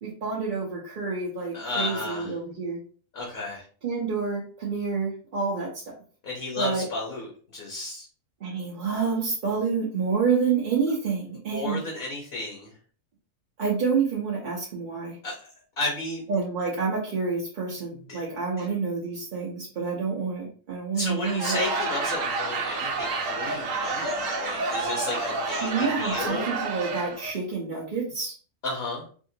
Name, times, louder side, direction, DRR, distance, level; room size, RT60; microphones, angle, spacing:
voice 1, 0.0-2.8 3.8-5.8 6.6-6.9 8.4-11.8 13.6-15.2 16.3-21.6 25.6-28.3, right 5 dB, 45° right, -4 dB, 0.7 m, -28 dB
voice 2, 1.5-2.3 3.1-3.6 6.2-8.0 11.5-12.7 15.2-15.5 15.8-16.2 18.1-18.2 18.6-18.7 20.9-26.6 28.6-29.0, left 2 dB, 50° left, -3 dB, 1.1 m, -33 dB
Laughter / Crowd, 21.1-27.3, right 3 dB, 75° right, 1.0 m, -29 dB
3.6 x 2.4 x 2.7 m, 0.43 s
omnidirectional pair, 1.4 m